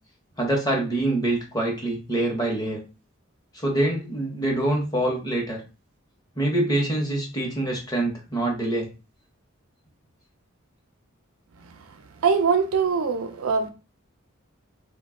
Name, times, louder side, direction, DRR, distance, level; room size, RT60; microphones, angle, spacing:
voice 1, 0.4-2.8 3.5-5.6 6.4-8.9, right 1 dB, 20° left, 0.8 m, -25 dB
voice 2, 12.2-13.7, right 5 dB, 85° right, 0.5 m, -22 dB
2.4 x 2.2 x 3.6 m
head